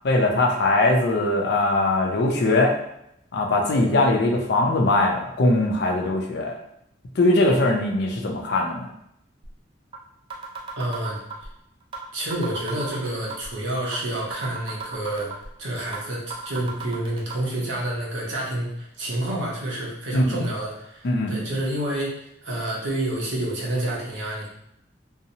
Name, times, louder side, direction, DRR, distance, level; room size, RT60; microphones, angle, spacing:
voice 1, 0.0-2.7 3.3-6.6 7.2-8.9 20.1-20.4 21.0-21.3, left 2 dB, 55° left, 1 dB, 0.4 m, -21 dB
sound 1, 9.4-9.5 9.9-10.0 10.3-11.5 11.9-12.0 12.3-13.5 13.9-14.0 14.3-15.5 15.9-16.0 16.3-17.3, right 5 dB, 25° right, 0.3 m, -34 dB
voice 2, 10.8-11.2 12.1-15.3 15.6-22.2 22.4-24.5, right 1 dB, 75° right, -3 dB, 0.7 m, -28 dB
2.7 x 2.0 x 2.6 m, 0.78 s
head